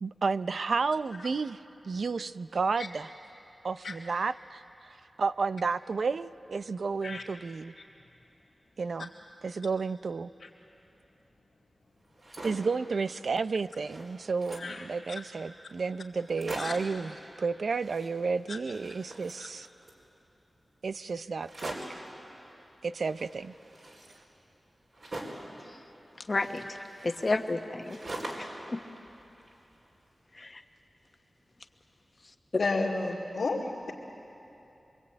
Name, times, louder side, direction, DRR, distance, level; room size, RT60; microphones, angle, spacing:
voice 1, 0.0-3.1 3.6-4.9 5.2-7.7 8.8-9.1 9.4-10.3 12.4-19.7 20.8-22.0 22.8-23.5, right 4 dB, 75° right, 13 dB, 0.5 m, -32 dB
sound 1, 12.0-12.8 13.3-13.4 13.6-14.8 15.5-15.6 15.8-15.9 16.2-16.9 17.7-18.5 18.7-20.0 21.4-22.1 23.0-25.5 26.3-28.6 29.0-29.9, right 1 dB, 60° right, 4.7 m, -43 dB
voice 2, 14.6-15.2 16.6-16.7 18.5-18.6 19.4-19.5 32.6-33.9, left 3 dB, 90° left, -8 dB, 2.4 m, -32 dB
voice 3, 26.3-26.8 27.0-28.0 28.4-28.8 30.4-30.6, left 2 dB, 40° left, 6 dB, 1.2 m, -31 dB
25.5 x 22.5 x 9.0 m, 2.9 s
wide cardioid pair, 80°, 0 cm